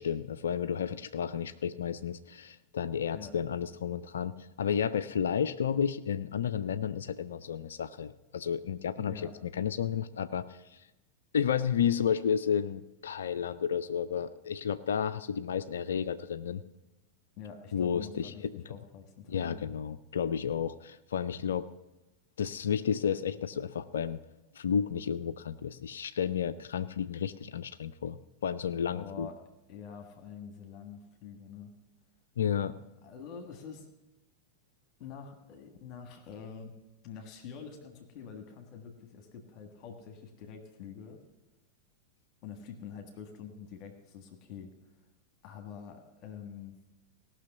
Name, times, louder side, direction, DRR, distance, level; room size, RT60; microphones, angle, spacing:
voice 1, 0.0-10.8 11.3-16.6 17.7-18.3 19.3-21.7 22.4-24.2 24.5-29.3 32.4-32.7, left 7 dB, 65° left, 14 dB, 0.4 m, -32 dB
voice 2, 9.0-9.4 17.4-19.8 28.9-29.4 29.7-31.7 32.5-33.9 35.0-36.8 37.0-41.2 42.4-44.7 45.4-46.7, left 7 dB, 40° left, 5 dB, 1.5 m, -46 dB
17.5 x 6.2 x 6.9 m, 1.0 s
figure-of-eight pair, 90°, 0 cm